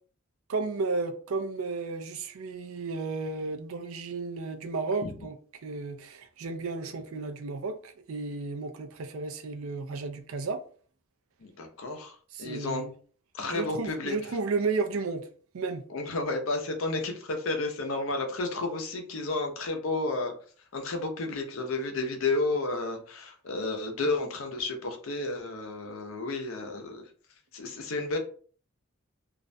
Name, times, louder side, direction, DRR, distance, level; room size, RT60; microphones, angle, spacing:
voice 1, 0.5-5.4 5.6-10.6 12.3-12.9 13.5-15.3 15.5-15.8, right 4 dB, 90° right, 0.4 m, -33 dB
voice 2, 11.4-12.8 13.3-14.2 15.9-20.3 20.7-27.0 27.5-28.2, left 2 dB, 80° left, 0.5 m, -31 dB
2.4 x 2.1 x 2.5 m
head